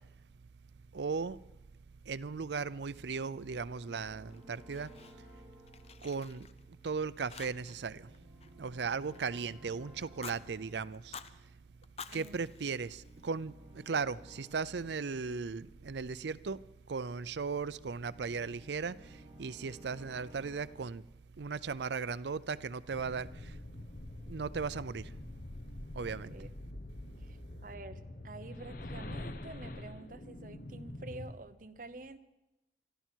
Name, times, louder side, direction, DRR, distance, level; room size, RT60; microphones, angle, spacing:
voice 1, 0.9-1.4 2.1-4.9 6.0-6.5 6.8-8.1 8.6-11.2 12.1-16.6 16.9-19.0 19.4-21.0 21.4-23.5 24.3-25.0 26.0-26.3, right 5 dB, 75° right, 0.5 m, -37 dB
sound 1, 2.4-16.7 17.2-20.8, equal, 10° right, 5.5 m, -58 dB
Fire, 4.3-5.4 5.7-6.9 7.3-7.9 8.1-9.5 10.0-10.4 10.9-11.3 11.8-13.4, left 6 dB, 35° left, 0.6 m, -50 dB
voice 2, 12.1-12.5 26.1-26.5 27.2-32.2, right 2 dB, 50° right, 0.9 m, -49 dB
sound 2, 22.9-31.3, left 1 dB, 50° left, 0.9 m, -45 dB
25.0 x 13.0 x 4.5 m
head